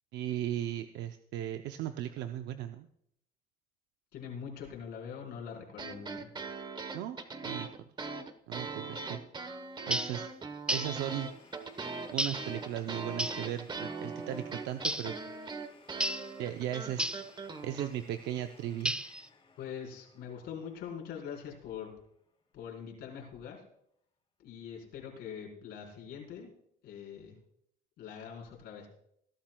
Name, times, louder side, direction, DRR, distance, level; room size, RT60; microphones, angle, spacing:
voice 1, 0.1-2.9 6.9-7.2 7.4-7.7 8.5-9.2 9.9-10.3 10.7-11.3 12.1-15.2 16.4-17.1 17.6-19.0, right 11 dB, 85° right, 7 dB, 0.6 m, -37 dB
voice 2, 4.1-6.3 19.6-21.9 22.5-23.6 24.4-26.5 26.8-27.4 28.0-28.9, left 7 dB, 75° left, -1 dB, 4.4 m, -43 dB
sound 1, 5.7-17.9, right 4 dB, 25° right, 1.1 m, -41 dB
sound 2, 9.9-10.2 10.7-11.0 12.2-12.5 13.2-13.5 14.8-15.1 16.0-16.3 17.0-17.3 18.9-19.3, right 1 dB, 5° right, 0.7 m, -32 dB
Domestic sounds home sounds, 10.9-22.5, left 4 dB, 30° left, 3.3 m, -61 dB
20.5 x 12.0 x 2.3 m, 0.72 s
cardioid pair, 110°, 17 cm